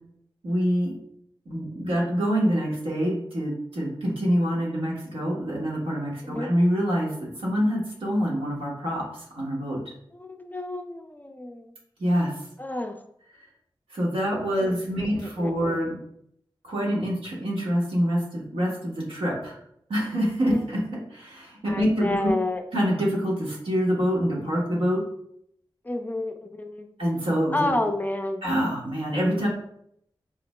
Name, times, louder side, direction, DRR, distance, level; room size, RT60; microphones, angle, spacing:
voice 1, 0.4-0.9 1.5-9.1 9.3-9.8 12.0-12.3 13.9-16.0 16.6-19.6 19.9-20.8 21.1-22.3 22.7-25.0 27.0-27.7 28.4-29.5, equal, 85° right, -4 dB, 1.1 m, -26 dB
voice 2, 10.1-11.7 12.6-13.0 14.6-15.9 20.5-20.7 21.7-22.6 25.8-26.9 27.5-28.4, left 2 dB, 20° left, 5 dB, 0.4 m, -30 dB
4.1 x 2.0 x 3.1 m, 0.72 s
wide cardioid pair, 60°, 9 cm